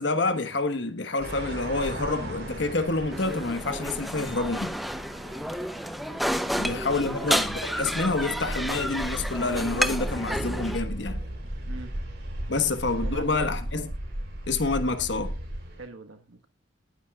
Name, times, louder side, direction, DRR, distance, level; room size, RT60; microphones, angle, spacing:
voice 1, 0.0-4.8 6.6-11.2 12.5-13.9 14.5-15.3, left 3 dB, 65° left, 1.3 m, -28 dB
sound 1, 1.2-15.9, right 1 dB, 55° right, 3.7 m, -36 dB
sound 2, 3.1-10.8, equal, ahead, 0.6 m, -31 dB
voice 2, 6.4-7.3 11.7-11.9 12.5-13.5 15.8-16.5, right 2 dB, 90° right, 1.4 m, -43 dB
sound 3, 7.2-9.6, right 2 dB, 30° right, 2.8 m, -48 dB
20.5 x 9.6 x 2.4 m
head